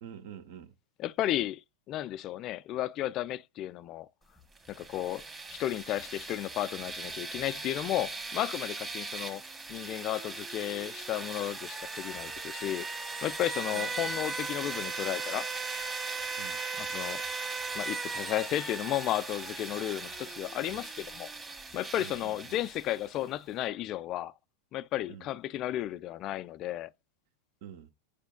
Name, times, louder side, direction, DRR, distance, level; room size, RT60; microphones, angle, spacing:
voice 1, 0.0-0.7 13.7-14.1 16.4-16.6 22.0-22.7 25.1-25.3 27.6-27.9, right 9 dB, 50° right, 0.9 m, -47 dB
voice 2, 1.0-4.1 4.7-5.2 5.5-9.4 9.7-12.9 13.2-15.5 16.8-17.2 17.7-21.3 21.7-24.3 24.7-26.9, left 13 dB, 35° left, 0.3 m, -33 dB
sound 1, 4.6-23.2, right 3 dB, 15° right, 1.6 m, -38 dB
10.0 x 5.1 x 2.3 m
figure-of-eight pair, 90°, 0 cm